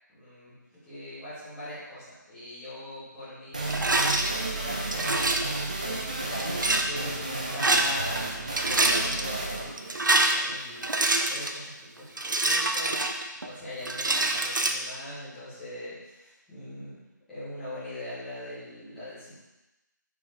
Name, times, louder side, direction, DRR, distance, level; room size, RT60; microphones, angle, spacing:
voice 1, 0.1-0.5 0.8-8.3 8.7-13.0 13.4-17.0 17.3-19.4, left 1 dB, ahead, -17 dB, 1.1 m, -41 dB
sound 1, 3.5-11.0, right 2 dB, 25° right, 0.6 m, -33 dB
Rattle, 3.7-4.3 4.9-5.5 6.4-6.9 7.5-8.2 8.5-9.2 9.8-11.6 12.2-13.5 13.8-14.7, right 2 dB, 75° right, 0.8 m, -25 dB
6.2 x 4.3 x 4.5 m, 0.99 s
figure-of-eight pair, 180°, 10 cm